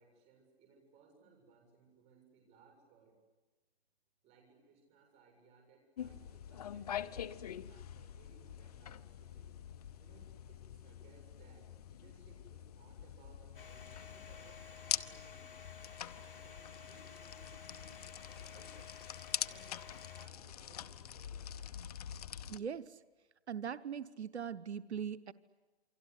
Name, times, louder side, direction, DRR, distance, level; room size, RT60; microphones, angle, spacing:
voice 1, 0.0-3.2 4.2-9.6 10.0-15.5 16.1-19.0 19.4-21.5, right 4 dB, 20° right, 3 dB, 7.3 m, -65 dB
sound 1, 6.0-22.6, left 9 dB, 35° left, 0.9 m, -45 dB
Domestic sounds home sounds, 13.5-20.3, left 6 dB, 55° left, 3.9 m, -54 dB
voice 2, 22.5-23.0 23.5-25.3, right 7 dB, 90° right, 13 dB, 1.1 m, -40 dB
28.5 x 23.5 x 8.3 m, 1.2 s
hypercardioid pair, 155°, 32 cm